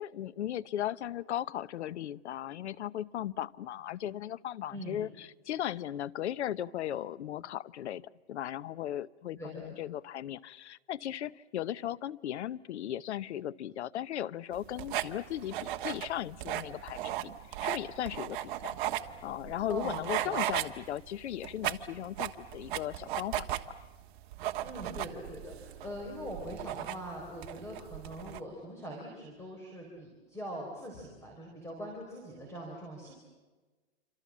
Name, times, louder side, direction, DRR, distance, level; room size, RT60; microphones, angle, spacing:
voice 1, 0.0-8.0 8.3-17.3 17.6-18.8 19.2-23.6, left 11 dB, 75° left, 20 dB, 0.9 m, -37 dB
voice 2, 4.7-5.1 9.4-9.7 19.7-20.4 24.6-33.1, equal, 10° left, 0 dB, 4.1 m, -42 dB
sound 1, 14.5-28.4, right 13 dB, 45° right, 1.4 m, -37 dB
27.5 x 26.5 x 7.4 m, 1.3 s
hypercardioid pair, 155°, 34 cm